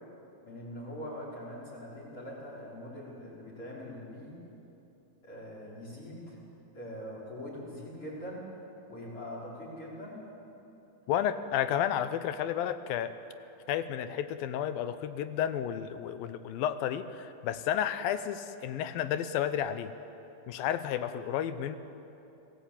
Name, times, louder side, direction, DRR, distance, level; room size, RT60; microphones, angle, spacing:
voice 1, 0.4-4.4 5.2-6.4 6.7-8.4 8.9-10.2, left 1 dB, 35° left, -6 dB, 5.9 m, -42 dB
voice 2, 11.1-13.1 13.7-19.9 20.5-21.8, left 10 dB, 80° left, 11 dB, 2.6 m, -31 dB
29.5 x 18.5 x 8.9 m, 2.9 s
omnidirectional pair, 4.2 m